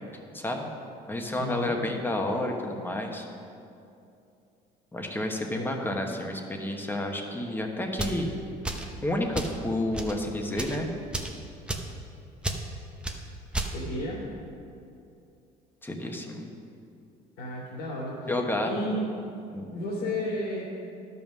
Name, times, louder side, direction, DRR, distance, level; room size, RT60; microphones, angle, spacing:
voice 1, 0.3-0.7 1.1-3.3 4.9-8.3 9.0-10.9 15.8-16.5 18.3-18.7 19.5-19.7, left 1 dB, 10° left, 2 dB, 1.2 m, -30 dB
voice 2, 1.4-1.8 5.5-6.0 13.6-14.2 17.4-18.3 18.6-19.1 19.7-20.6, left 1 dB, 60° left, -7 dB, 2.7 m, -33 dB
sound 1, 7.9-8.2 8.6-8.9 9.3-9.6 9.9-10.2 10.5-10.8 11.1-11.4 11.7-11.9 12.4-12.6 13.0-13.2 13.5-13.7, right 2 dB, 5° right, 0.8 m, -32 dB
11.5 x 5.5 x 6.2 m, 2.6 s
cardioid pair, 110°, 17 cm